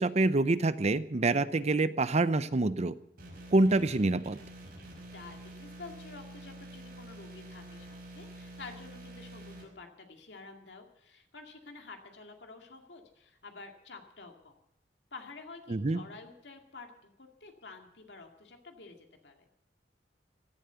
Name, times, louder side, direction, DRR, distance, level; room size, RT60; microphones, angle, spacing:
voice 1, 0.0-2.9 3.5-4.4 15.7-16.0, right 2 dB, 40° right, 15 dB, 0.6 m, -26 dB
sound 1, 3.2-9.6, right 1 dB, 55° right, 5.3 m, -48 dB
voice 2, 5.1-14.5 15.1-19.0 19.2-19.5, left 3 dB, 75° left, 3 dB, 2.3 m, -49 dB
16.5 x 11.5 x 6.9 m, 0.77 s
head